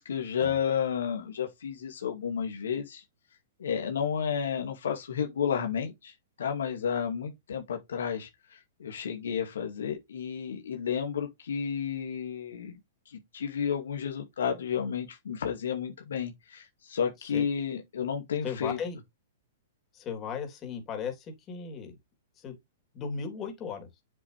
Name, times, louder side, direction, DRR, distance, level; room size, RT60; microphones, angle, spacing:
voice 1, 0.0-3.0 3.6-6.1 6.4-12.8 13.1-18.8, left 7 dB, 85° left, 2.2 m, -32 dB
voice 2, 18.4-19.0 19.9-22.0 22.4-22.5 22.9-23.9, left 6 dB, 25° left, 3.4 m, -36 dB
7.7 x 7.5 x 3.4 m
hypercardioid pair, 135°, 0 cm